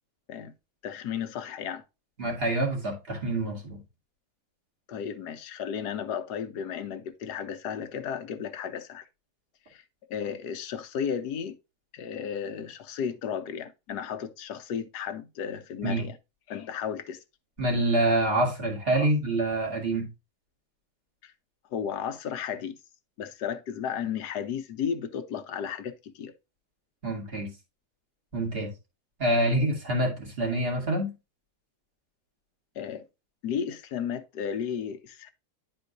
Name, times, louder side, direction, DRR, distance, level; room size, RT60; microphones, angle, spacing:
voice 1, 0.8-1.8 4.9-9.0 9.7-9.8 10.1-11.6 11.9-16.2 16.5-17.2 18.9-19.1 21.2-21.3 21.7-22.8 23.2-26.3 32.7-33.0 33.4-35.3, left 8 dB, 85° left, 1.4 m, -34 dB
voice 2, 2.2-3.8 15.8-16.0 17.6-20.1 27.0-27.5 28.3-28.7 29.2-31.1, right 1 dB, 35° right, 2.3 m, -26 dB
11.0 x 4.5 x 2.6 m
omnidirectional pair, 1.7 m